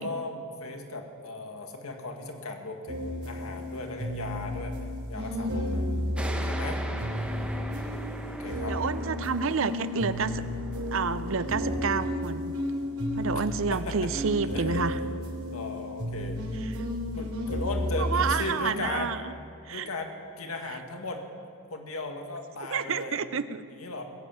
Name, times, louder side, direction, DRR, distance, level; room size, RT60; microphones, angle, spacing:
voice 1, 0.0-4.8 5.1-5.9 6.4-6.8 8.4-8.8 13.7-14.1 14.5-15.2 15.5-16.4 17.2-19.2 19.7-21.2 21.7-23.2 23.7-24.0, left 2 dB, 75° left, 4 dB, 1.7 m, -37 dB
Jazz Background Music Loop, 2.9-18.4, left 1 dB, 85° right, 3.0 m, -32 dB
voice 2, 5.2-6.2 8.7-10.4 10.9-12.5 13.2-15.0 18.0-19.2 19.7-19.9 22.7-23.6, right 5 dB, 60° right, 14 dB, 0.6 m, -29 dB
sound 1, 6.1-13.3, right 1 dB, 5° right, 0.9 m, -41 dB
20.5 x 7.9 x 8.9 m, 2.6 s
head